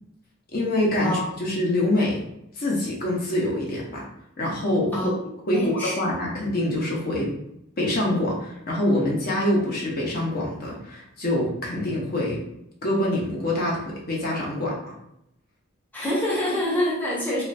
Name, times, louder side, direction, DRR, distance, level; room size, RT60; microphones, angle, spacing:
voice 1, 0.5-2.2 2.6-4.0 4.4-4.9 5.5-7.3 7.8-12.4 12.8-14.9, left 1 dB, 45° left, -3 dB, 0.7 m, -25 dB
voice 2, 5.5-6.0 15.9-17.4, left 1 dB, 10° left, -7 dB, 0.6 m, -26 dB
3.1 x 2.4 x 2.5 m, 0.77 s
head